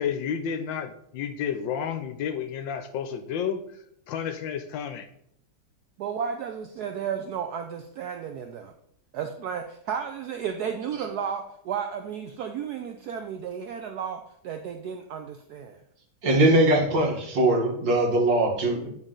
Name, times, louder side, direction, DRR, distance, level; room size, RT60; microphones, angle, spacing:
voice 1, 0.0-3.6 4.1-5.1, left 8 dB, 75° left, 8 dB, 1.2 m, -31 dB
voice 2, 6.0-8.7 9.1-15.8, right 7 dB, 85° right, 5 dB, 0.8 m, -33 dB
voice 3, 16.2-18.9, right 1 dB, 65° right, 1 dB, 1.9 m, -21 dB
8.8 x 3.9 x 3.7 m, 0.73 s
omnidirectional pair, 2.2 m